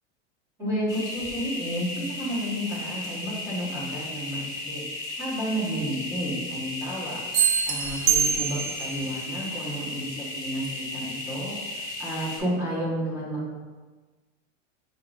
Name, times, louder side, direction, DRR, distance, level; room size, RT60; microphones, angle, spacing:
voice 1, 0.6-13.5, equal, 10° right, -8 dB, 0.9 m, -32 dB
sound 1, 0.9-12.4, left 2 dB, 10° left, 0.5 m, -35 dB
sound 2, 7.3-9.0, right 8 dB, 60° right, 0.5 m, -24 dB
5.0 x 3.6 x 2.4 m, 1.3 s
supercardioid pair, 175°, 35 cm